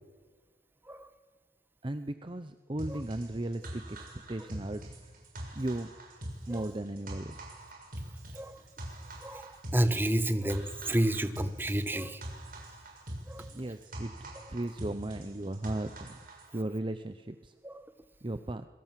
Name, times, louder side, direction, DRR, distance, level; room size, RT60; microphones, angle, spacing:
voice 1, 1.8-5.1 5.5-5.9 6.5-7.4 13.5-16.2 16.5-17.5 18.2-18.7, right 1 dB, 25° right, 10 dB, 0.7 m, -36 dB
sound 1, 2.8-16.5, right 1 dB, 50° right, 6.7 m, -43 dB
voice 2, 9.2-12.2 13.3-13.4 17.6-17.7, right 1 dB, 10° right, 10 dB, 1.3 m, -30 dB
27.5 x 22.5 x 7.6 m, 1.4 s
head